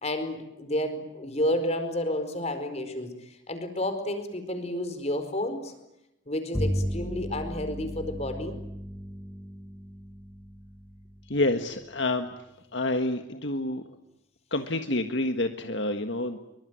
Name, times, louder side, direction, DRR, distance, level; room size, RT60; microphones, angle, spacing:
voice 1, 0.0-5.7 6.3-8.6, left 1 dB, 35° left, 8 dB, 4.7 m, -31 dB
Bowed string instrument, 6.5-12.2, equal, ahead, 1.7 m, -35 dB
voice 2, 11.3-12.3 12.7-13.8 14.5-16.4, left 2 dB, 65° left, 7 dB, 1.7 m, -28 dB
26.0 x 24.0 x 9.5 m, 0.88 s
head